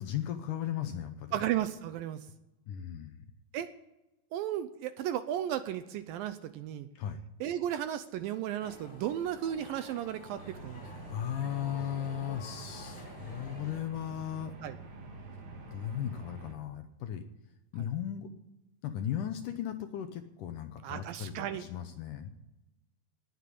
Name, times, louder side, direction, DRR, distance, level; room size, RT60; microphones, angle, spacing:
voice 1, 0.0-1.4 2.7-3.2 7.0-7.2 11.1-14.5 15.7-17.2 17.7-18.3 18.8-22.3, left 10 dB, 70° left, 8 dB, 2.1 m, -36 dB
voice 2, 1.3-2.2 3.5-3.7 4.3-6.9 7.4-10.8 14.6-14.7 20.8-21.6, right 11 dB, 80° right, 11 dB, 2.2 m, -34 dB
sound 1, 8.6-13.8, left 2 dB, 35° left, 5.4 m, -50 dB
sound 2, 10.3-16.5, right 3 dB, 50° right, 3.1 m, -47 dB
19.5 x 8.0 x 8.5 m, 0.97 s
omnidirectional pair, 4.5 m